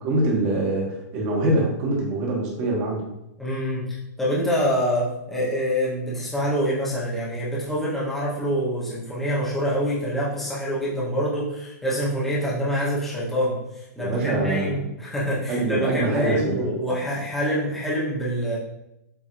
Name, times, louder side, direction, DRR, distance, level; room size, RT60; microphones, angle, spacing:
voice 1, 0.0-3.1 14.0-14.8 15.5-16.5, right 2 dB, 25° right, -2 dB, 1.2 m, -24 dB
voice 2, 3.4-18.6, equal, 5° left, -8 dB, 0.8 m, -26 dB
7.2 x 2.6 x 2.5 m, 0.83 s
hypercardioid pair, 170°, 9 cm